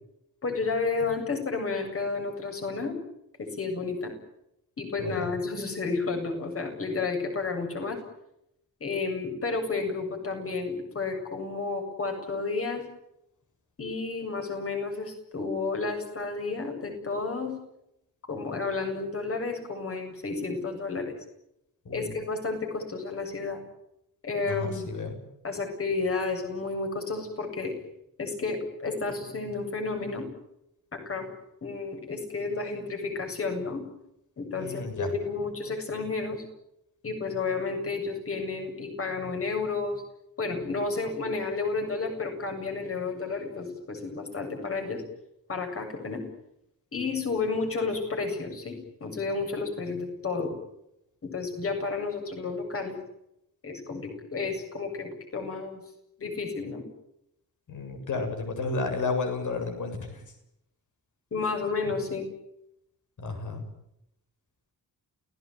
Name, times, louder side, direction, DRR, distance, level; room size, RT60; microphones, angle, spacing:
voice 1, 0.4-3.0 3.4-4.1 4.8-8.0 8.8-12.8 13.8-17.5 18.3-21.1 21.9-23.6 24.2-24.9 25.4-27.7 28.2-30.3 30.9-31.3 31.6-33.8 34.4-36.4 37.0-40.0 40.4-45.0 45.5-46.2 46.9-50.5 51.2-53.0 53.6-55.8 56.2-56.9 61.3-62.3, left 4 dB, 40° left, 4 dB, 7.7 m, -31 dB
voice 2, 5.0-5.3 21.9-22.1 24.4-25.1 34.6-35.1 57.7-60.2 63.2-63.6, left 3 dB, 55° left, 6 dB, 7.6 m, -32 dB
29.0 x 18.5 x 9.4 m, 0.82 s
wide cardioid pair, 165°, 35 cm